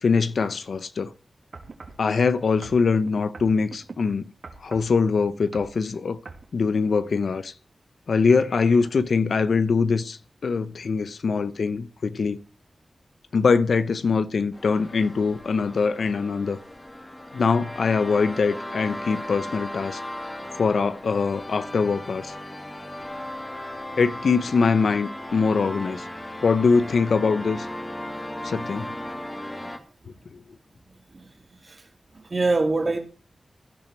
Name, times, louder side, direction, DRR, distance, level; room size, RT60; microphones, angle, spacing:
voice 1, 0.0-1.1 2.0-4.2 4.6-6.2 6.5-7.5 8.1-12.4 13.3-16.6 17.3-20.0 20.6-22.3 24.0-26.1 26.4-27.7 28.4-28.9 30.3-30.4, left 5 dB, 80° left, 0.8 m, -23 dB
sound 1, 1.5-2.0 2.6-4.0 4.4-4.9 5.4-5.8 6.2-6.5 7.1-7.2, right 4 dB, 65° right, 2.3 m, -42 dB
sound 2, 14.5-29.8, left 1 dB, 25° left, 2.2 m, -36 dB
voice 2, 32.2-33.0, right 3 dB, 40° right, 3.0 m, -24 dB
16.5 x 11.0 x 4.4 m
wide cardioid pair, 105°, 0 cm